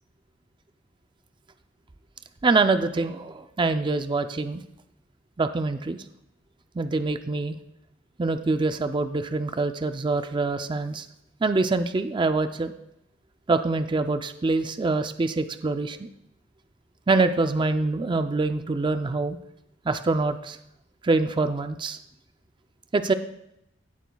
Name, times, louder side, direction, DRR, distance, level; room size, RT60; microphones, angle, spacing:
voice 1, 2.4-4.6 5.4-6.0 6.7-7.6 8.2-11.1 11.4-12.7 13.5-16.1 17.1-19.4 19.9-20.6 21.0-22.0 22.9-23.1, right 3 dB, 25° right, 9 dB, 0.4 m, -25 dB
16.5 x 10.0 x 2.3 m, 0.83 s
head